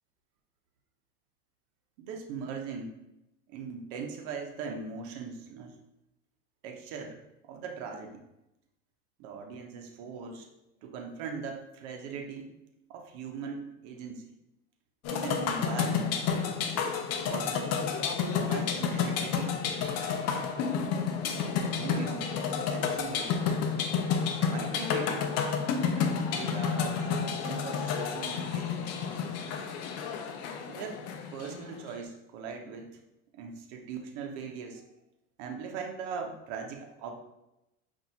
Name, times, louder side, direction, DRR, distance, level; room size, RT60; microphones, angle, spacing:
voice 1, 2.0-3.0 3.5-5.7 6.6-7.2 7.5-8.2 9.2-10.5 10.8-12.5 12.9-14.3 15.1-16.2 17.3-17.8 18.4-20.0 21.7-22.3 22.7-23.3 24.5-25.3 25.8-29.0 30.7-31.0 31.3-33.0 33.3-34.8 35.4-37.2, right 5 dB, 75° right, 2 dB, 0.8 m, -40 dB
sound 1, 15.0-31.9, left 6 dB, 50° left, 0.6 m, -30 dB
sound 2, 19.8-24.5, left 4 dB, 15° left, 1.2 m, -48 dB
5.6 x 2.6 x 2.7 m, 0.88 s
supercardioid pair, 100°, 32 cm